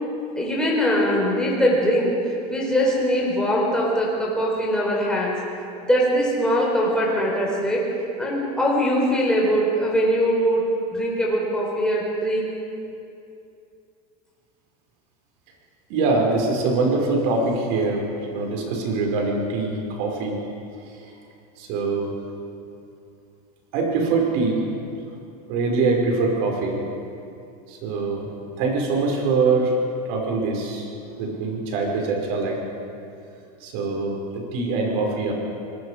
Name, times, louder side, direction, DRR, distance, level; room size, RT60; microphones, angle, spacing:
voice 1, 0.4-2.1 2.5-5.4 5.9-7.9 8.2-10.6 10.9-12.4, equal, 5° left, -4 dB, 4.5 m, -21 dB
voice 2, 15.9-18.0 18.3-20.4 21.6-22.1 23.7-24.6 25.5-26.8 27.7-28.3 28.6-30.9 31.2-32.6 33.6-35.3, right 3 dB, 55° right, 0 dB, 5.6 m, -23 dB
25.5 x 20.5 x 5.1 m, 2.6 s
supercardioid pair, 140°, 21 cm